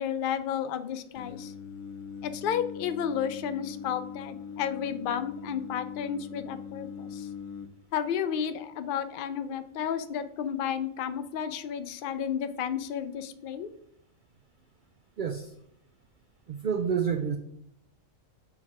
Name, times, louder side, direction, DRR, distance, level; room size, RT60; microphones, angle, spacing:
voice 1, 0.0-1.5 2.2-7.3 7.9-13.7, left 8 dB, 70° left, 11 dB, 0.5 m, -32 dB
Singing, 1.1-7.7, left 7 dB, 90° left, 1.0 m, -41 dB
voice 2, 15.2-15.5 16.5-17.4, right 7 dB, 80° right, 7 dB, 0.4 m, -28 dB
6.3 x 3.5 x 4.7 m, 0.72 s
omnidirectional pair, 1.4 m